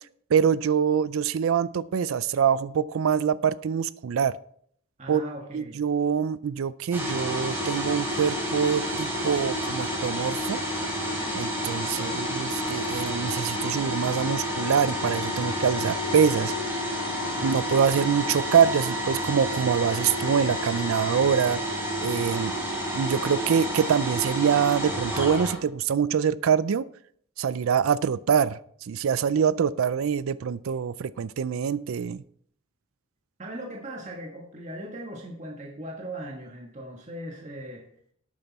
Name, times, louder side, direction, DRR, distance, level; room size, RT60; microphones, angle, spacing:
voice 1, 0.3-4.3 5.1-5.2 5.5-10.6 11.3-16.5 17.4-21.6 22.0-22.5 22.9-26.8 27.4-32.2, right 7 dB, 80° right, 17 dB, 0.4 m, -25 dB
voice 2, 5.0-5.8 11.9-12.2 17.3-17.6 33.4-37.8, right 1 dB, 35° right, -1 dB, 1.7 m, -39 dB
sound 1, 6.9-25.6, equal, 10° right, 3.9 m, -30 dB
sound 2, 12.6-23.2, left 2 dB, 80° left, 1.4 m, -41 dB
12.0 x 8.8 x 4.2 m, 0.62 s
head